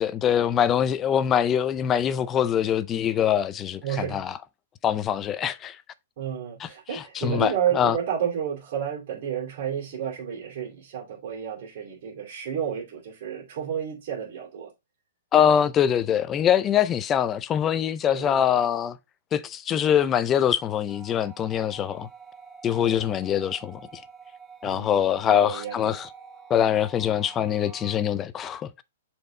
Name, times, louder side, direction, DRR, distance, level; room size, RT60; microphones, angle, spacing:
voice 1, 0.0-4.3 4.8-5.8 6.6-8.0 15.3-19.0 19.3-22.1 22.6-24.0 24.6-26.1 26.5-28.7, left 9 dB, 15° left, 0.4 m, -23 dB
voice 2, 3.8-4.2 6.2-14.7 18.1-18.6 22.7-23.2 24.6-26.0, right 9 dB, 45° right, 2.8 m, -31 dB
sound 1, 20.9-28.0, right 5 dB, 5° right, 0.9 m, -47 dB
6.7 x 4.4 x 3.7 m
hypercardioid pair, 160°, 0 cm